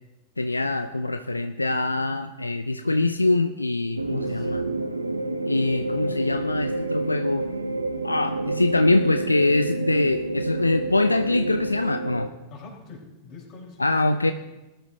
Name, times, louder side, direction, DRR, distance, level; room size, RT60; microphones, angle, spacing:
voice 1, 0.4-4.6 5.5-7.5 8.0-12.3 13.8-14.3, left 2 dB, 80° left, 10 dB, 0.4 m, -23 dB
sound 1, 4.0-12.3, right 2 dB, 80° right, 0.7 m, -29 dB
voice 2, 4.1-4.5 12.5-14.3, left 4 dB, 40° left, 0 dB, 4.1 m, -42 dB
19.5 x 12.5 x 2.7 m, 1.1 s
figure-of-eight pair, 90°, 0 cm